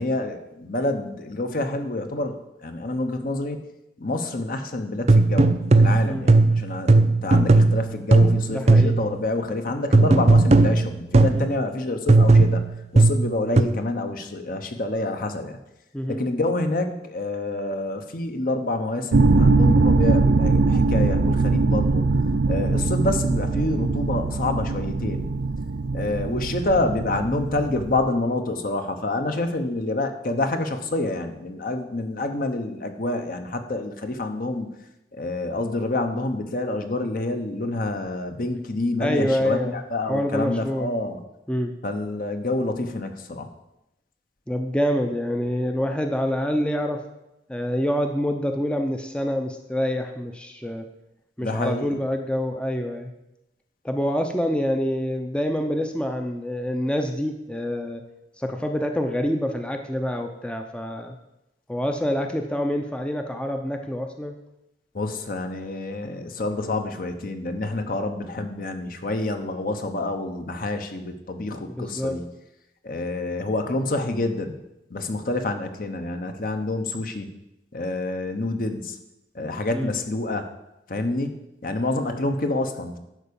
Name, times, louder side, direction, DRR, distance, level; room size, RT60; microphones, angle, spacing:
voice 1, 0.0-3.6 4.0-12.6 12.9-15.6 16.1-22.0 22.5-25.3 25.9-34.7 35.1-41.2 41.8-43.5 51.4-51.9 64.9-72.3 72.8-74.6 74.9-77.3 77.7-79.0 79.3-80.5 80.9-83.0, left 2 dB, 55° left, 6 dB, 1.0 m, -27 dB
sound 1, 5.1-9.1 9.9-11.5 12.1-13.6, right 3 dB, 40° right, 0.5 m, -16 dB
voice 2, 8.5-8.9 11.3-11.6 15.9-16.2 23.0-23.1 39.0-39.8 40.1-40.9 41.5-41.7 44.5-47.0 47.5-50.9 51.4-53.1 53.8-58.0 58.4-61.2 61.7-64.3 71.7-72.2 79.7-79.9, equal, 5° left, 4 dB, 0.6 m, -26 dB
sound 2, 19.1-28.1, right 3 dB, 85° right, 0.6 m, -21 dB
11.0 x 4.8 x 7.0 m, 0.90 s
head